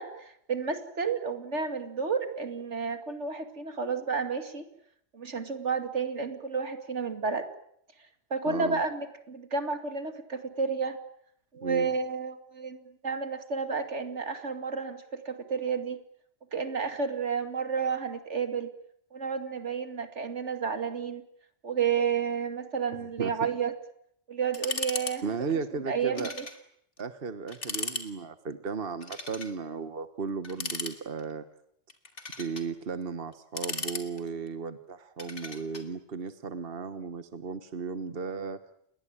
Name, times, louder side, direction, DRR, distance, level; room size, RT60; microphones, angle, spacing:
voice 1, 0.0-4.6 5.1-7.5 8.3-11.0 11.5-12.8 13.0-16.0 16.5-18.7 19.1-21.2 21.6-23.7 24.3-25.3 25.9-26.4, right 5 dB, 85° right, 8 dB, 2.7 m, -31 dB
voice 2, 8.4-8.8 11.6-11.9 23.0-23.5 25.2-26.3 27.0-31.4 32.4-38.6, right 5 dB, 55° right, 11 dB, 1.5 m, -35 dB
sound 1, 24.5-25.2 25.4-25.5 26.2-26.6 27.0-27.1 27.5-28.1 29.0-29.5 30.4-31.3 31.9-32.7 33.3-34.5 35.2-35.9, left 3 dB, 85° left, 3.1 m, -36 dB
29.0 x 21.5 x 8.9 m, 0.71 s
omnidirectional pair, 1.2 m